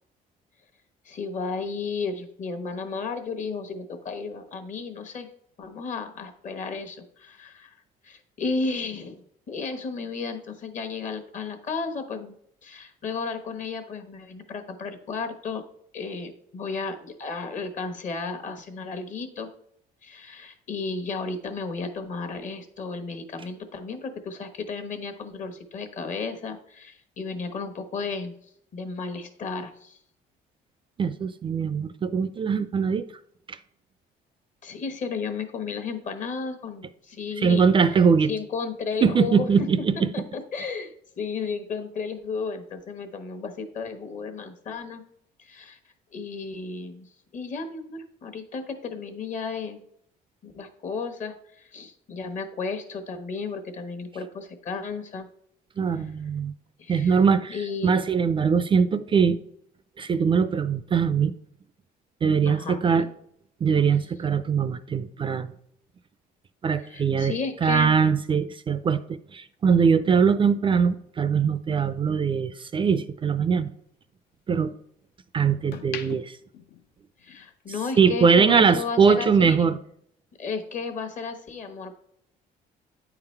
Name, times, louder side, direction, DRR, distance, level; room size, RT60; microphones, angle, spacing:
voice 1, 1.0-5.3 5.6-7.7 8.0-9.2 9.5-12.4 12.6-15.6 15.9-19.5 20.0-28.3 28.7-30.0 34.6-37.6 38.3-39.5 40.1-45.0 45.4-45.8 46.1-47.1 47.3-49.8 50.4-55.3 56.0-56.1 56.8-57.2 57.5-58.0 62.4-63.1 66.8-68.0 77.2-79.7 80.4-81.9, left 4 dB, 45° left, 6 dB, 1.1 m, -33 dB
voice 2, 31.0-33.0 33.5-33.6 37.4-38.3 39.0-40.1 55.8-56.5 56.9-59.4 60.0-61.3 62.2-63.1 63.6-65.5 66.6-67.3 67.6-73.7 74.5-74.7 75.3-76.4 78.0-79.8, right 6 dB, 30° right, 13 dB, 0.4 m, -22 dB
sound 1, 70.9-73.2 73.6-75.0 75.5-77.6 77.9-78.2, left 9 dB, 75° left, 0.7 m, -43 dB
9.2 x 3.9 x 4.4 m, 0.69 s
cardioid pair, 110°, 17 cm